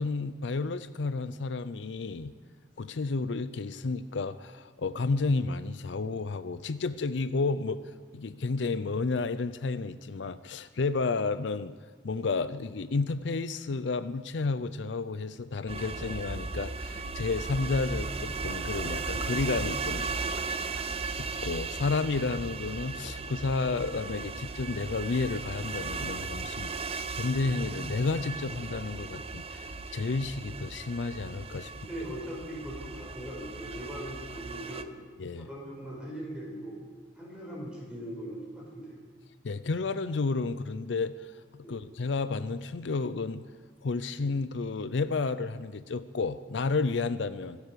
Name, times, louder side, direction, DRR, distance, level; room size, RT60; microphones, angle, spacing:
voice 1, 0.0-2.3 2.8-7.8 8.1-11.7 12.0-20.8 21.2-31.7 35.2-35.5 39.4-41.3 41.7-43.4 43.8-47.6, left 3 dB, 75° left, 13 dB, 0.5 m, -31 dB
sound 1, 15.7-34.8, right 4 dB, 30° right, 0.7 m, -36 dB
voice 2, 31.7-34.9 35.4-36.8 37.2-39.0 41.6-41.8, equal, 5° right, -4 dB, 5.1 m, -40 dB
24.5 x 8.2 x 6.8 m, 1.5 s
head